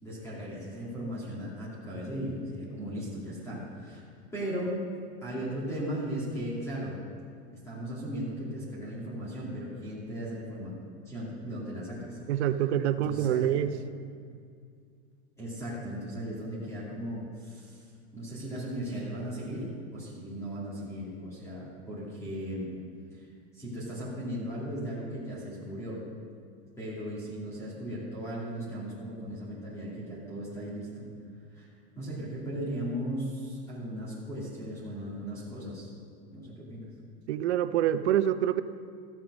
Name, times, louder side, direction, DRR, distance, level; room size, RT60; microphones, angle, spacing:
voice 1, 0.0-4.0 4.3-4.8 5.2-7.0 7.6-10.7 11.0-12.2 13.0-13.5 15.4-17.8 18.1-19.6 19.9-22.7 23.1-23.3 23.5-26.0 26.8-31.1 31.5-31.7 32.0-35.9 36.3-36.9, equal, 10° left, -7 dB, 2.4 m, -37 dB
voice 2, 12.3-13.7 37.3-38.6, right 11 dB, 90° right, 12 dB, 0.7 m, -26 dB
14.0 x 7.4 x 6.2 m, 2.2 s
supercardioid pair, 170°, 33 cm